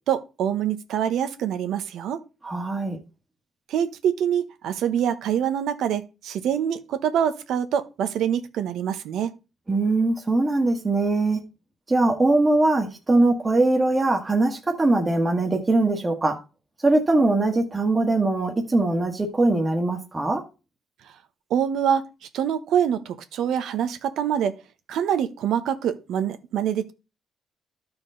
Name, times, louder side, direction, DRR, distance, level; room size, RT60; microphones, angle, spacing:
voice 1, 0.0-2.2 3.7-9.3 21.0-21.1 21.5-22.0 22.3-24.5 24.9-26.9, right 9 dB, 80° right, 0.9 m, -25 dB
voice 2, 2.4-3.0 9.7-11.4 11.9-16.4 16.8-20.4, right 2 dB, 25° right, 1.4 m, -21 dB
12.5 x 4.5 x 3.8 m
cardioid pair, 90°, 0 cm